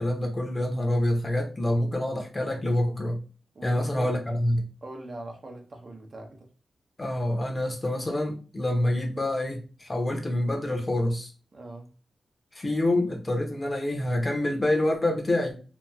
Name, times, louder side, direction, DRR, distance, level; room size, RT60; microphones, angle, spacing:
voice 1, 0.0-3.2 3.6-4.7 7.0-11.3 12.5-15.6, left 1 dB, 30° left, 0.8 m, -27 dB
voice 2, 3.5-4.2 4.8-6.5 11.5-11.9, right 2 dB, 50° right, 0.6 m, -42 dB
2.9 x 2.3 x 2.3 m
cardioid pair, 65°, 0 cm